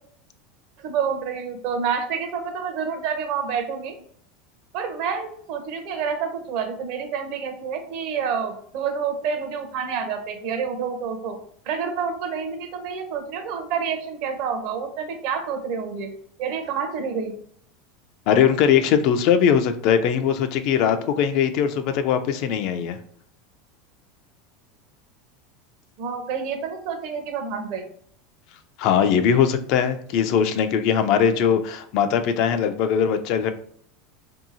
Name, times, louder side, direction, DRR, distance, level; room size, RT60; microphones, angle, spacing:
voice 1, 0.8-3.9 4.7-11.4 11.7-16.1 16.4-17.4 26.0-27.8, right 6 dB, 55° right, 6 dB, 0.6 m, -28 dB
voice 2, 18.3-23.0 28.8-33.5, left 8 dB, 55° left, 9 dB, 0.3 m, -20 dB
2.7 x 2.7 x 2.6 m, 0.62 s
supercardioid pair, 145°, 0 cm